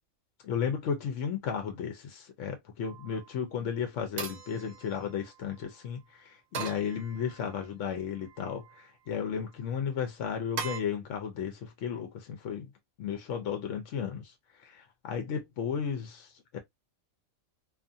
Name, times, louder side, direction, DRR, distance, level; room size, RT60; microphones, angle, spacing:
voice 1, 0.4-12.7 13.0-14.2 14.6-16.6, left 7 dB, 65° left, 0.9 m, -34 dB
sound 1, 2.8-3.3 4.2-5.5 6.5-7.6 8.2-8.8 10.6-10.8, right 6 dB, 80° right, 1.1 m, -41 dB
2.5 x 2.5 x 2.5 m
omnidirectional pair, 1.5 m